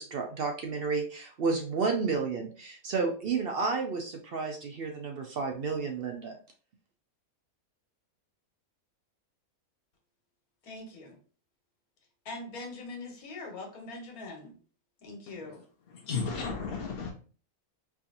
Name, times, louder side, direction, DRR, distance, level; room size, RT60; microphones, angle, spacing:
voice 1, 0.0-6.4, right 4 dB, 65° right, 3 dB, 0.5 m, -31 dB
voice 2, 10.6-11.2 12.2-14.6 15.0-15.6, left 2 dB, 75° left, 2 dB, 1.6 m, -42 dB
voice 3, 15.9-17.1, left 5 dB, 55° left, -1 dB, 0.7 m, -33 dB
4.5 x 2.8 x 2.5 m, 0.39 s
omnidirectional pair, 1.6 m